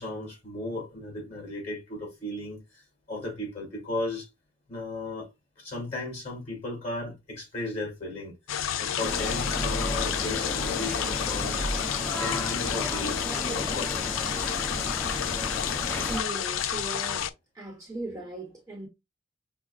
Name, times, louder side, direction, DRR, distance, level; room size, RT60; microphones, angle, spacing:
voice 1, 0.0-4.3 4.7-5.3 5.6-8.3 8.8-11.7 12.2-14.1, left 2 dB, 35° left, 2.8 m, -35 dB
sound 1, 8.5-17.3, left 9 dB, 85° left, 0.4 m, -30 dB
sound 2, 9.0-16.2, left 1 dB, 10° left, 0.4 m, -33 dB
voice 2, 15.7-17.3 17.5-18.9, right 2 dB, 15° right, 1.2 m, -38 dB
6.0 x 2.3 x 2.3 m
head